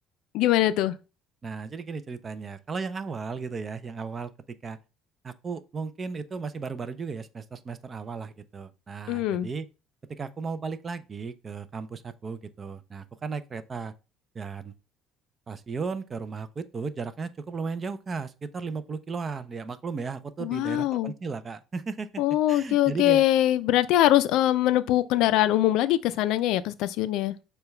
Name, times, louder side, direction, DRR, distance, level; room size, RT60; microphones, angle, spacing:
voice 1, 0.3-1.0 9.1-9.5 20.4-21.1 22.2-27.3, left 13 dB, 75° left, 0.3 m, -23 dB
voice 2, 1.4-4.8 5.2-9.7 10.1-13.9 14.3-14.7 15.5-22.2 22.5-23.2, right 5 dB, 30° right, 0.4 m, -35 dB
6.7 x 2.2 x 3.2 m
cardioid pair, 110°, 0 cm